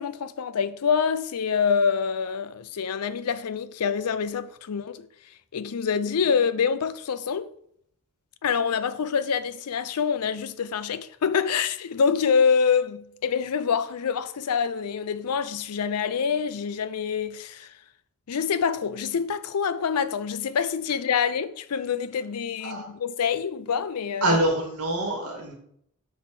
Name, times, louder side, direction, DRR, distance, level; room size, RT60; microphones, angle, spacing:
voice 1, 0.0-5.1 5.5-7.5 8.4-17.7 18.3-24.4, left 6 dB, 85° left, 0.5 m, -26 dB
voice 2, 24.2-25.5, right 1 dB, 75° right, 1.9 m, -25 dB
5.6 x 4.5 x 5.8 m
head